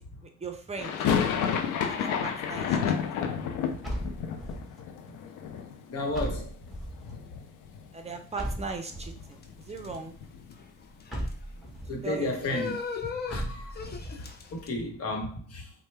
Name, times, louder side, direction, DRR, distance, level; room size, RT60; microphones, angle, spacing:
voice 1, 0.2-0.9 1.9-2.8 7.9-10.1 12.0-12.7, right 4 dB, 20° right, 0.7 m, -38 dB
sound 1, 0.8-6.7 7.0-7.8 8.1-8.2 8.5-10.6, left 7 dB, 90° left, 0.5 m, -31 dB
sound 2, 3.8-4.8 6.1-7.1 8.4-9.3 11.1-12.0 13.3-14.1, equal, ahead, 1.2 m, -36 dB
voice 2, 5.9-6.5 7.1-7.2 11.9-12.8 13.3-15.7, left 1 dB, 55° left, 1.1 m, -33 dB
sound 3, 9.4-14.7, left 5 dB, 35° left, 0.6 m, -39 dB
4.3 x 2.2 x 3.3 m
cardioid pair, 90°, 30 cm